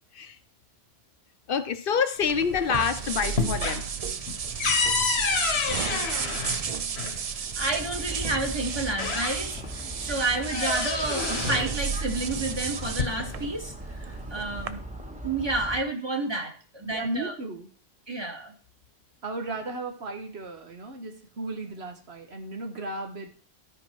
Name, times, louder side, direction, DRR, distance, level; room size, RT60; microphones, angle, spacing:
voice 1, 1.5-3.9, left 6 dB, 60° left, 11 dB, 0.8 m, -26 dB
sound 1, 2.2-2.9 3.2-7.2 8.3-8.4 8.8-9.7 10.1-11.7 12.7-13.5, left 4 dB, 85° left, 1.4 m, -29 dB
sound 2, 2.3-14.7, right 7 dB, 50° right, 0.5 m, -33 dB
voice 2, 7.4-14.8 15.1-17.3 18.1-18.5, right 2 dB, 25° right, 2 dB, 1.8 m, -30 dB
sound 3, 7.6-15.8, equal, 5° right, 0.9 m, -39 dB
voice 3, 16.8-17.7 19.2-23.3, right 2 dB, 85° right, 5 dB, 1.6 m, -35 dB
13.0 x 5.2 x 4.6 m, 0.41 s
omnidirectional pair, 1.1 m